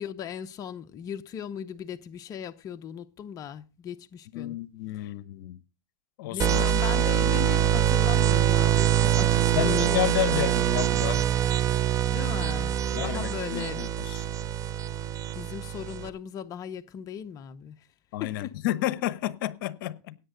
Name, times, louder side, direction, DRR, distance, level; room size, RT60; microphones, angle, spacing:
voice 1, 0.0-4.6 6.3-10.6 12.1-13.8 15.4-17.9 18.2-18.5, left 8 dB, 30° left, 0.7 m, -38 dB
voice 2, 4.3-5.6 6.2-6.7 9.5-11.3 12.9-14.3 18.1-20.2, left 14 dB, 65° left, 0.9 m, -31 dB
sound 1, 6.4-16.1, right 10 dB, 30° right, 0.8 m, -24 dB
17.0 x 8.9 x 3.8 m
supercardioid pair, 125°, 12 cm